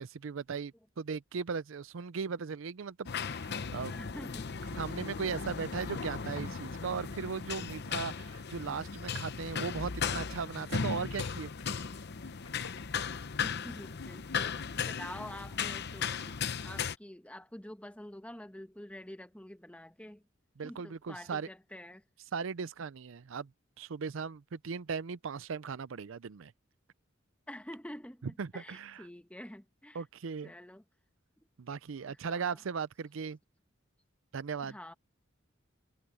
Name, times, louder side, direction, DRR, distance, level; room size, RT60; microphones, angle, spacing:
voice 1, 0.0-3.9 4.7-11.5 20.6-21.5 22.3-23.5 23.8-26.5 28.4-29.0 29.9-30.5 31.6-33.4 34.3-34.7, right 5 dB, 70° right, 0.5 m, -38 dB
sound 1, 3.1-17.0, left 6 dB, 55° left, 0.8 m, -37 dB
voice 2, 3.9-4.6 13.4-20.2 20.6-22.0 27.5-30.0 30.4-30.8 32.1-32.6 34.6-34.9, left 1 dB, 5° left, 1.4 m, -47 dB
sound 2, 5.7-10.0 11.0-12.2 12.5-12.9 13.4-14.0 14.4-14.5 15.1-15.2, left 5 dB, 80° left, 1.9 m, -56 dB
head